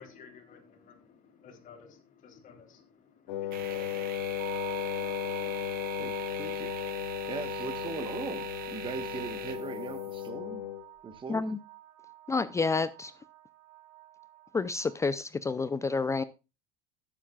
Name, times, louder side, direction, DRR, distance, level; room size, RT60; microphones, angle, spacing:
voice 1, 0.0-4.0, left 6 dB, 45° left, 3.3 m, -53 dB
Wind instrument woodwind instrument, 3.3-10.9, left 12 dB, 85° left, 1.3 m, -35 dB
sound 1, 3.5-10.3, right 9 dB, 55° right, 1.5 m, -43 dB
sound 2, 4.4-14.9, right 16 dB, 70° right, 1.3 m, -46 dB
voice 2, 6.0-6.7 7.3-10.6 11.0-11.5, right 5 dB, 25° right, 1.3 m, -40 dB
voice 3, 12.3-13.1 14.5-16.2, left 4 dB, 15° left, 0.5 m, -29 dB
16.5 x 7.3 x 2.4 m
supercardioid pair, 100°, 18 cm